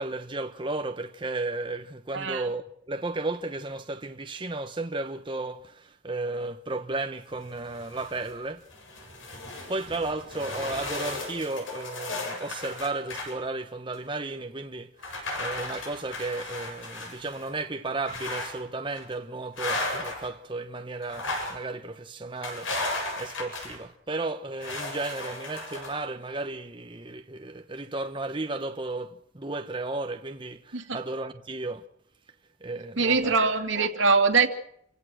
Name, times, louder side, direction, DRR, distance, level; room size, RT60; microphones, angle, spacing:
voice 1, 0.0-8.6 9.7-22.7 23.2-31.8 32.6-33.4, right 2 dB, 25° right, 1.0 m, -34 dB
sound 1, 7.4-8.3 8.7-13.3 13.9-14.0 15.0-17.5 18.1-18.6 18.9-19.1 19.6-20.3 21.0-21.6 22.4-23.8 24.6-26.0, left 2 dB, 90° left, 7.9 m, -35 dB
voice 2, 33.0-34.5, right 4 dB, 80° right, 2.6 m, -22 dB
28.5 x 16.5 x 6.3 m
head